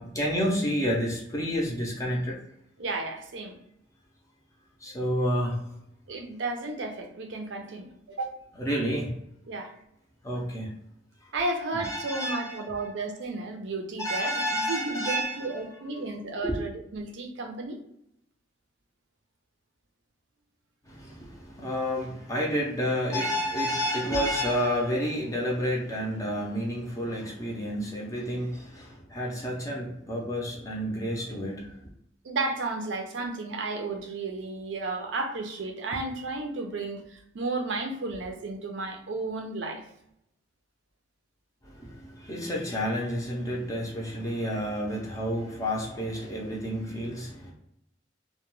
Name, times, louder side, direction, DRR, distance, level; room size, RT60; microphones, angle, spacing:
voice 1, 0.0-2.4 4.8-5.6 8.6-9.1 10.2-10.7 11.7-12.9 14.0-15.6 16.4-16.6 20.9-31.7 41.6-47.5, equal, 15° left, -2 dB, 0.5 m, -30 dB
voice 2, 2.8-3.6 6.1-8.4 9.5-9.7 11.3-17.8 32.2-39.8, right 3 dB, 70° right, 4 dB, 0.5 m, -33 dB
2.2 x 2.2 x 3.0 m, 0.77 s
head